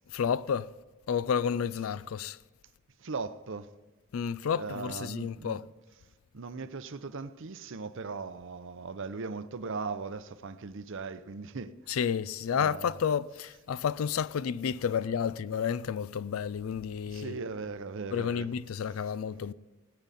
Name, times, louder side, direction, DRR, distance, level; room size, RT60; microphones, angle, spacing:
voice 1, 0.1-0.7 1.1-2.4 4.1-5.6 11.9-17.4 18.1-19.5, left 7 dB, 75° left, 0.4 m, -31 dB
voice 2, 3.0-3.7 4.6-5.6 6.3-11.8 12.5-13.0 17.1-18.5 19.3-19.5, right 4 dB, 65° right, 0.7 m, -38 dB
17.5 x 9.7 x 4.2 m
head